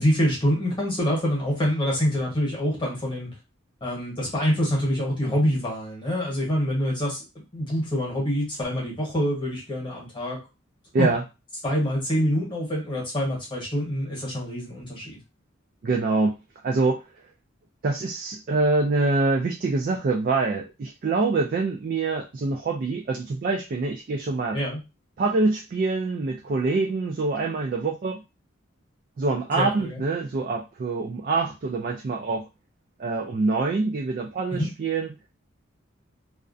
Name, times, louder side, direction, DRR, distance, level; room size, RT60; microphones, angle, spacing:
voice 1, 0.0-3.3 3.8-7.2 7.5-10.4 11.0-11.1 11.6-15.2 24.5-24.8 29.5-30.0 34.5-34.7, equal, 25° left, -3 dB, 1.0 m, -25 dB
voice 2, 15.8-16.3 16.6-17.0 17.8-24.6 25.2-28.2 29.2-32.5 33.0-35.1, right 3 dB, 45° right, 1 dB, 0.3 m, -25 dB
2.4 x 2.1 x 2.5 m, 0.27 s
head